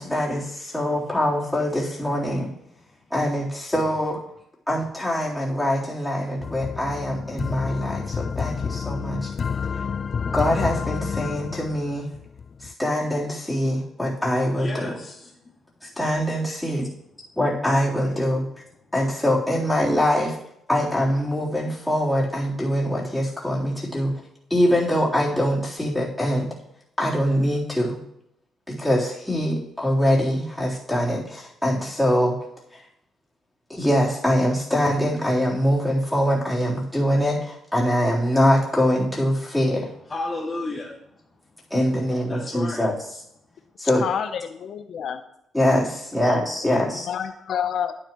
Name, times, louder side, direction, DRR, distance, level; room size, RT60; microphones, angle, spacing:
voice 1, 0.0-2.5 3.1-4.2 4.7-9.3 10.3-12.1 12.6-14.9 15.8-16.9 17.4-18.4 18.9-20.4 20.7-24.1 24.5-26.5 27.0-28.0 28.7-32.4 32.7-32.8 33.7-39.9 41.7-42.9 43.8-44.0 45.5-47.0, equal, 5° left, -7 dB, 3.7 m, -23 dB
sound 1, 6.4-12.7, left 6 dB, 45° left, 0.3 m, -29 dB
voice 2, 14.6-15.5 15.9-16.2 40.1-41.2 42.3-42.8, left 2 dB, 30° left, -6 dB, 2.1 m, -33 dB
voice 3, 44.0-45.2 47.1-47.9, left 8 dB, 65° left, 9 dB, 0.7 m, -28 dB
11.0 x 10.0 x 3.1 m, 0.79 s
cardioid pair, 90°, 0 cm